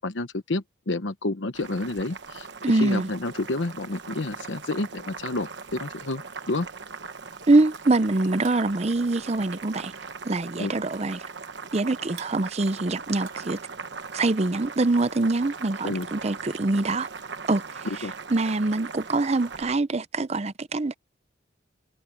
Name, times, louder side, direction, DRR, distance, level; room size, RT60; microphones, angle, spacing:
voice 1, 0.0-6.7 10.6-10.7 15.8-16.1 17.8-18.1, left 2 dB, 75° left, 1.0 m, -30 dB
Boiling, 1.5-19.8, right 5 dB, 60° right, 1.1 m, -40 dB
voice 2, 2.6-3.1 7.5-9.9 10.2-11.2 11.7-13.6 14.1-17.1 17.5-17.6 18.3-20.9, right 2 dB, 35° right, 0.6 m, -24 dB
sound 1, 7.7-14.3, right 11 dB, 85° right, 3.9 m, -52 dB
head